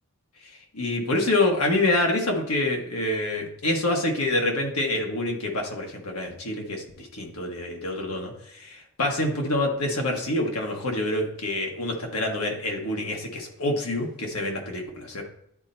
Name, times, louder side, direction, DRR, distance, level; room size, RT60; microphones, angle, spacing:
voice 1, 0.4-15.2, left 2 dB, 90° left, 1 dB, 1.5 m, -27 dB
11.0 x 4.3 x 2.7 m, 0.76 s
head